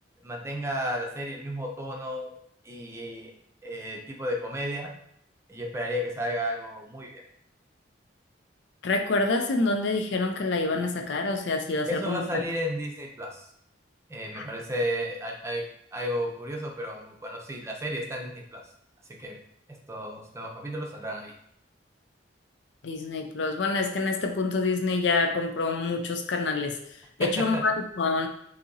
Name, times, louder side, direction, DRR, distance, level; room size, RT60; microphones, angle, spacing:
voice 1, 0.2-2.3 2.6-3.3 3.6-4.9 5.5-7.2 11.9-13.5 14.1-15.6 15.9-18.6 19.2-19.3 19.7-21.3 27.2-27.6, equal, 15° right, 0 dB, 0.6 m, -33 dB
voice 2, 8.8-12.2 14.3-14.4 22.8-26.7 27.2-28.3, left 3 dB, 75° left, 4 dB, 0.5 m, -27 dB
6.6 x 2.7 x 2.7 m, 0.71 s
head